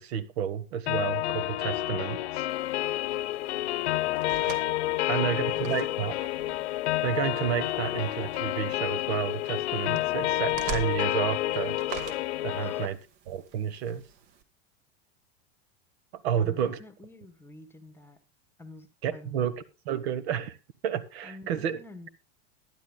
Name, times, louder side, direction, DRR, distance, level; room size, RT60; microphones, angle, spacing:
voice 1, 0.0-2.4 5.1-6.3 7.0-11.8 12.4-13.0 13.3-14.0 16.2-16.8 19.0-19.5 19.8-20.6 20.8-21.8, right 9 dB, 70° right, 13 dB, 1.4 m, -31 dB
sound 1, 0.9-12.9, left 15 dB, 80° left, 1.0 m, -29 dB
sound 2, 2.5-14.4, right 7 dB, 50° right, 1.7 m, -45 dB
voice 2, 4.8-6.1 12.6-13.0 16.4-18.2 18.6-19.6 21.2-22.1, left 2 dB, 5° left, 11 dB, 1.2 m, -49 dB
22.0 x 10.5 x 2.3 m, 0.28 s
supercardioid pair, 140°, 33 cm